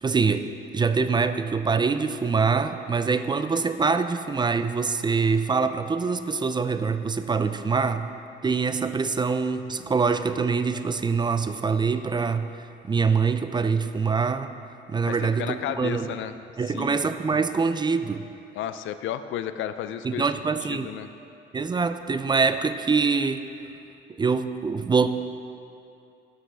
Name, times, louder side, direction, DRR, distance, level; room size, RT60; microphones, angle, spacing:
voice 1, 0.0-8.1 8.4-14.5 14.9-16.1 16.6-18.2 20.0-20.9 21.5-23.4 24.2-25.1, right 5 dB, 20° right, 10 dB, 0.4 m, -24 dB
voice 2, 15.0-16.3 16.7-17.0 18.5-20.3 20.6-21.1, left 10 dB, 75° left, 11 dB, 0.4 m, -33 dB
11.5 x 7.5 x 3.4 m, 2.6 s
cardioid pair, 90°, 20 cm